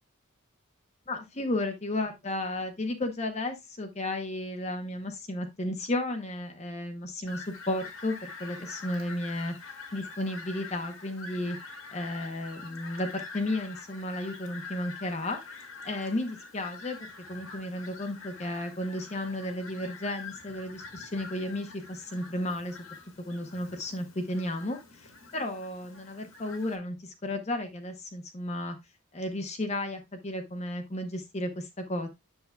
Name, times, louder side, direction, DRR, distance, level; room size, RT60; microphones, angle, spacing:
voice 1, 1.1-11.6 11.9-15.4 15.8-22.8 23.2-28.8 29.1-32.1, left 1 dB, 30° left, 5 dB, 0.7 m, -33 dB
Fowl, 7.3-26.8, left 4 dB, 80° left, 1.7 m, -46 dB
8.0 x 6.8 x 2.2 m, 0.20 s
head